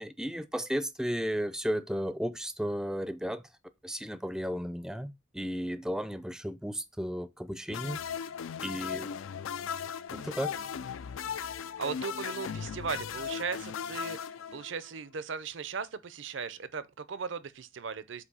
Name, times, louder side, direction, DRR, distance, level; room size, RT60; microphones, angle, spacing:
voice 1, 0.0-3.4 3.8-8.0 8.6-9.1 10.1-10.6, equal, 5° right, 0.4 m, -34 dB
sound 1, 7.7-15.0, left 7 dB, 80° left, 0.4 m, -37 dB
voice 2, 11.5-18.2, right 5 dB, 65° right, 0.6 m, -38 dB
8.2 x 2.7 x 5.4 m
head